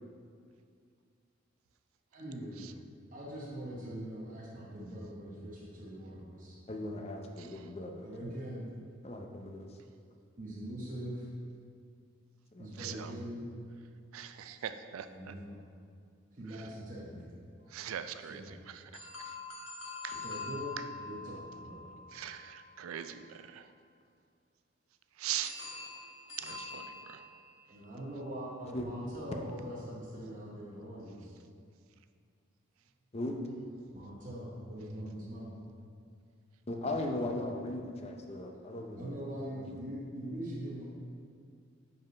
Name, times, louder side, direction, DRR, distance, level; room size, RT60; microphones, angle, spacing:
voice 1, 2.1-2.6 3.1-6.6 8.0-8.7 10.4-11.3 12.6-13.5 15.0-15.6 16.3-17.3 18.2-18.5 20.1-20.7 21.0-21.9 27.7-31.3 33.9-35.5 39.0-40.8, equal, 40° right, -6 dB, 0.9 m, -42 dB
voice 2, 6.7-8.1 9.0-9.7 12.5-12.9 28.7-28.9 33.1-33.4 36.7-39.2 39.6-39.8, left 1 dB, 30° left, 3 dB, 0.5 m, -38 dB
voice 3, 12.8-13.1 14.1-15.3 17.7-18.8 20.0-20.2 22.1-23.2 23.5-23.6 25.2-25.5 26.4-27.2, right 10 dB, 85° right, 10 dB, 0.4 m, -40 dB
sound 1, 18.9-23.0 25.4-27.8, left 4 dB, 80° left, 1.4 m, -45 dB
5.4 x 4.8 x 5.2 m, 2.3 s
head